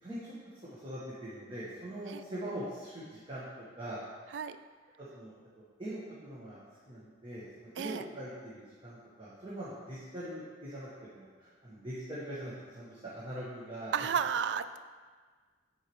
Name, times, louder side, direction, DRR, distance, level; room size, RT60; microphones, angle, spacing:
voice 1, 0.0-3.4 3.8-4.0 5.0-13.9, right 1 dB, 30° right, -9 dB, 1.4 m, -42 dB
voice 2, 13.9-14.8, right 7 dB, 85° right, 12 dB, 0.3 m, -32 dB
10.0 x 4.7 x 3.1 m, 1.5 s
head